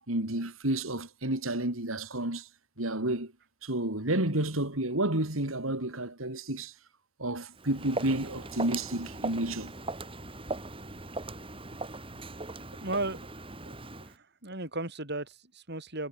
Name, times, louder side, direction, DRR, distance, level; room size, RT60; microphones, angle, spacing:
voice 1, 0.1-2.5 2.8-3.3 3.6-6.7 7.2-9.7, right 1 dB, 75° right, 4.1 m, -30 dB
Walk footsteps, 7.6-14.2, right 2 dB, 25° right, 2.9 m, -39 dB
voice 2, 12.8-13.3 13.7-13.8 14.0-16.1, right 2 dB, 55° right, 7.8 m, -35 dB
head